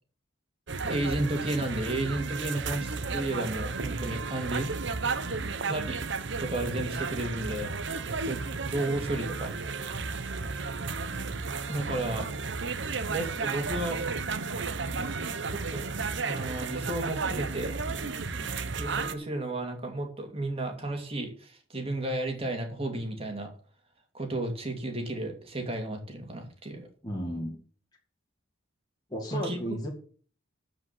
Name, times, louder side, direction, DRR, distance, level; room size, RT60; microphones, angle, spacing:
sound 1, 0.7-19.1, right 4 dB, 60° right, 0.9 m, -33 dB
voice 1, 0.8-4.7 5.6-6.0 6.3-7.7 8.2-9.5 11.7-12.3 13.1-14.0 15.5-17.8 18.4-18.5 18.8-23.5 24.1-26.9 29.3-29.6, right 1 dB, 30° right, 3 dB, 2.6 m, -33 dB
voice 2, 27.0-27.6 29.1-29.9, equal, 20° left, -1 dB, 2.0 m, -34 dB
14.0 x 5.2 x 7.3 m, 0.43 s
head